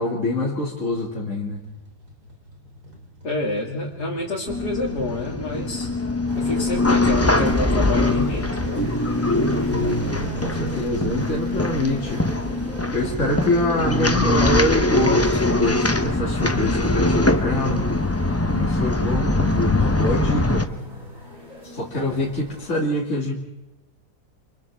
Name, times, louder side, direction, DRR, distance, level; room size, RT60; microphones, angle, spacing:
voice 1, 0.0-1.6 9.7-12.3 12.9-17.9 18.5-20.7 21.6-23.3, left 1 dB, 45° left, -3 dB, 2.9 m, -25 dB
sound 1, 1.4-16.6 16.8-16.9, right 3 dB, 70° right, 4.6 m, -37 dB
voice 2, 3.2-5.9 6.4-8.9, left 2 dB, 80° left, -3 dB, 3.1 m, -28 dB
sound 2, 4.5-20.6, left 2 dB, 10° left, 0.7 m, -22 dB
sound 3, 6.3-22.8, equal, 55° right, 5.6 m, -40 dB
29.0 x 26.5 x 3.6 m, 0.98 s
omnidirectional pair, 1.7 m